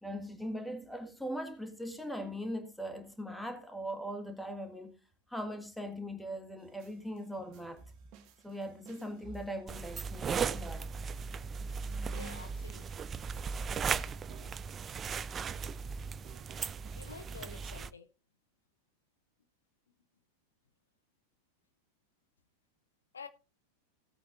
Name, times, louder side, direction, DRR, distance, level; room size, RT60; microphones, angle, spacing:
voice 1, 0.0-5.0 5.3-7.8 8.4-10.9, equal, ahead, 1.7 m, -40 dB
sound 1, 6.6-17.6, right 5 dB, 40° right, 1.7 m, -56 dB
sound 2, 9.7-17.9, right 6 dB, 20° right, 0.4 m, -37 dB
voice 2, 12.1-12.9 16.9-18.1 23.1-23.3, left 5 dB, 70° left, 0.7 m, -48 dB
17.5 x 8.5 x 2.5 m
figure-of-eight pair, 90°, 0 cm